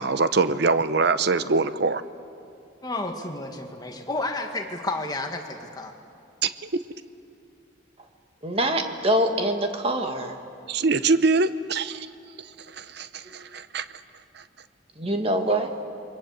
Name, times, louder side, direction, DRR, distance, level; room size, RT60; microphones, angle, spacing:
voice 1, 0.0-2.0 6.4-6.7 10.7-12.1 12.7-13.8, right 4 dB, 55° right, 12 dB, 0.8 m, -23 dB
voice 2, 2.8-5.9, left 2 dB, 20° left, 4 dB, 1.7 m, -31 dB
voice 3, 8.4-10.3 15.0-15.7, right 1 dB, 30° right, 5 dB, 1.8 m, -24 dB
28.5 x 23.0 x 8.2 m, 2.5 s
head